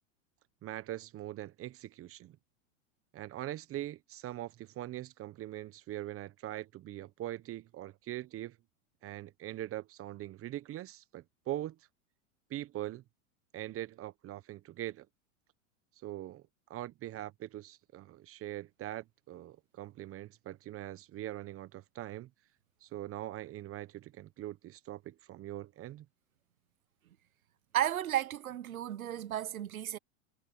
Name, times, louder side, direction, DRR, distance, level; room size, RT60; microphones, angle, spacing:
voice 1, 0.6-2.4 3.1-8.6 9.0-11.8 12.5-13.0 13.5-15.1 16.0-16.4 16.7-22.3 22.8-26.1, right 14 dB, 35° right, 1.2 m, -42 dB
voice 2, 27.7-30.0, right 11 dB, 90° right, 1.2 m, -33 dB
hypercardioid pair, 110°, 41 cm